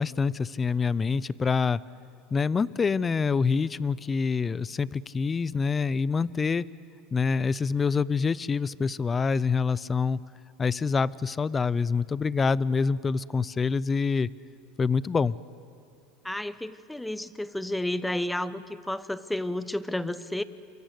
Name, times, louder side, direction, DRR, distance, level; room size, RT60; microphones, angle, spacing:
voice 1, 0.0-1.8 2.3-6.6 7.1-10.2 10.6-14.3 14.8-15.4, left 5 dB, 20° left, 20 dB, 0.6 m, -26 dB
voice 2, 16.2-20.4, left 1 dB, 5° left, 14 dB, 1.0 m, -31 dB
28.5 x 23.5 x 8.3 m, 2.4 s
supercardioid pair, 110°, 0 cm